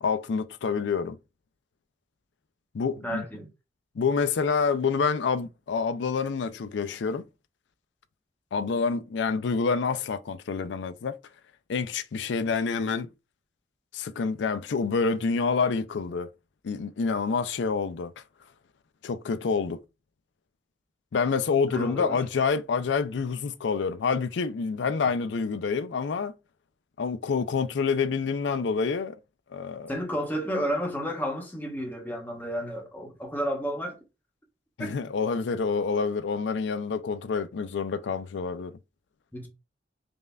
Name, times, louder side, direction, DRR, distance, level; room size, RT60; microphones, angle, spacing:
voice 1, 0.0-1.2 2.7-3.2 4.0-7.2 8.5-11.2 11.7-13.1 13.9-16.3 16.6-18.1 19.0-19.8 21.1-26.3 27.0-29.2 29.5-29.9 34.8-38.7, left 5 dB, 75° left, 0.4 m, -27 dB
voice 2, 3.0-3.5 21.7-22.2 29.9-34.0 34.8-35.0 39.3-39.5, equal, 10° left, 0.8 m, -31 dB
5.2 x 2.5 x 2.2 m
head